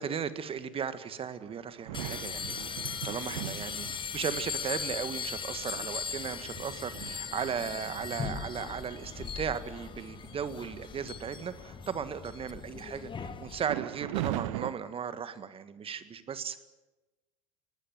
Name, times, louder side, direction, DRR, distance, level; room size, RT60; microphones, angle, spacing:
voice 1, 0.0-3.9 4.1-16.6, right 7 dB, 30° right, 12 dB, 1.7 m, -36 dB
sound 1, 1.4-4.4 5.1-5.2 5.6-9.3 9.8-9.9 10.2-10.7 11.0-11.8 13.6-14.7, right 15 dB, 65° right, 1.0 m, -40 dB
A manifold array of bells, 1.9-13.6, left 6 dB, 25° left, 1.9 m, -39 dB
19.0 x 19.0 x 9.2 m, 1.1 s
hypercardioid pair, 75°, 18 cm